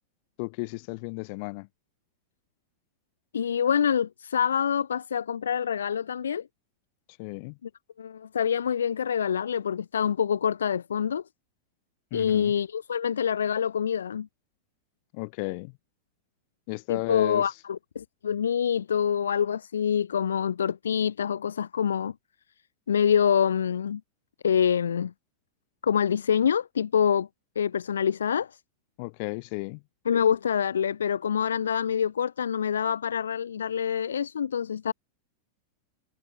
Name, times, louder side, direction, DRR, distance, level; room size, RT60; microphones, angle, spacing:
voice 1, 0.4-1.7 7.2-7.6 12.1-12.5 15.1-15.7 16.7-17.5 29.0-29.8, left 31 dB, 45° left, 2.3 m, -33 dB
voice 2, 3.3-6.5 8.0-11.2 12.1-14.3 16.9-22.1 22.9-24.0 24.4-25.1 25.8-27.3 27.6-28.6 30.1-34.9, left 8 dB, 70° left, 0.7 m, -26 dB
figure-of-eight pair, 90°, 0 cm